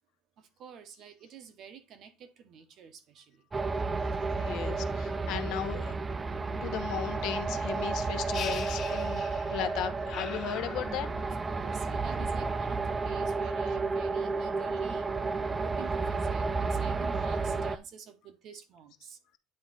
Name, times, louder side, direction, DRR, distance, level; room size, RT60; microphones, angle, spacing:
voice 1, 0.4-3.4 4.1-4.5 11.2-19.2, right 7 dB, 40° right, 0.9 m, -49 dB
sound 1, 3.5-17.8, right 4 dB, 15° right, 0.3 m, -32 dB
voice 2, 4.4-5.9 6.6-9.2 9.5-11.1, left 10 dB, 55° left, 0.8 m, -36 dB
sound 2, 8.3-9.7 10.1-11.4, left 8 dB, 35° left, 1.1 m, -42 dB
9.8 x 3.6 x 4.1 m
cardioid pair, 170°, 0 cm